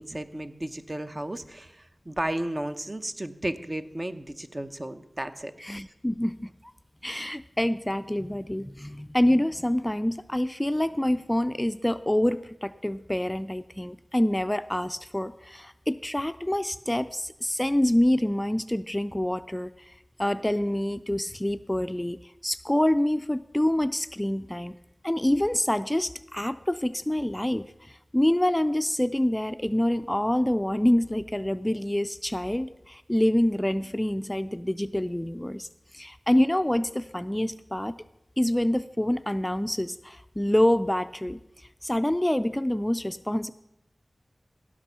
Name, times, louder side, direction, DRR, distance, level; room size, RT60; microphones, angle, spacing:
voice 1, 0.0-5.5, right 1 dB, 40° right, 8 dB, 0.8 m, -33 dB
voice 2, 5.6-6.5 7.0-19.9 20.2-24.8 25.0-35.7 35.9-37.9 38.4-41.4 41.8-43.5, left 1 dB, 15° left, 12 dB, 0.4 m, -26 dB
17.0 x 6.1 x 5.6 m, 0.85 s
wide cardioid pair, 40°, 0 cm